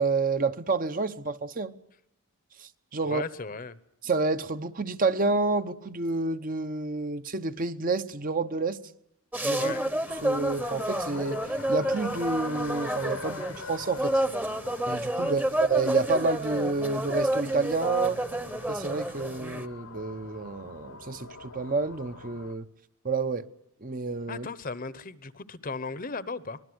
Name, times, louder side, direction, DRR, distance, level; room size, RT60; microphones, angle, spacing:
voice 1, 0.0-1.7 2.6-3.2 4.0-8.8 9.4-9.7 10.2-14.2 14.9-15.4 15.7-18.2 18.7-22.7 23.0-23.5 23.8-24.5, right 3 dB, 40° right, 0.9 m, -29 dB
voice 2, 3.0-3.8 9.5-9.8 15.2-15.3 24.3-26.6, left 4 dB, 40° left, 0.9 m, -36 dB
sound 1, 9.3-19.7, right 1 dB, 10° right, 1.0 m, -30 dB
sound 2, 10.1-22.5, left 4 dB, 75° left, 1.3 m, -44 dB
24.5 x 20.5 x 7.9 m
head